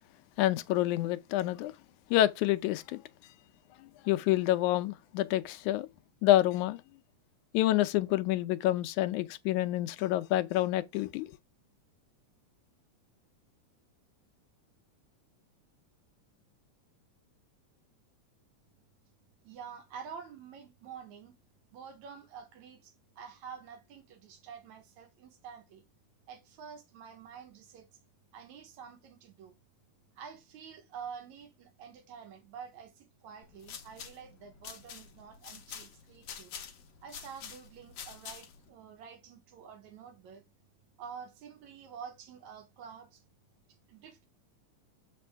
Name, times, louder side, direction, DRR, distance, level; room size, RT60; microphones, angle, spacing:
voice 1, 0.4-1.7 2.1-3.0 4.1-5.9 6.2-6.8 7.5-11.3, left 14 dB, 85° left, 2.1 m, -28 dB
voice 2, 19.4-21.3 21.7-25.8 26.3-27.9 28.3-29.6 30.2-36.5 37.0-40.4 41.0-43.2 43.9-44.3, right 7 dB, 75° right, 2.4 m, -48 dB
sound 1, 33.4-38.7, left 7 dB, 60° left, 2.0 m, -47 dB
7.5 x 5.3 x 3.4 m
omnidirectional pair, 3.4 m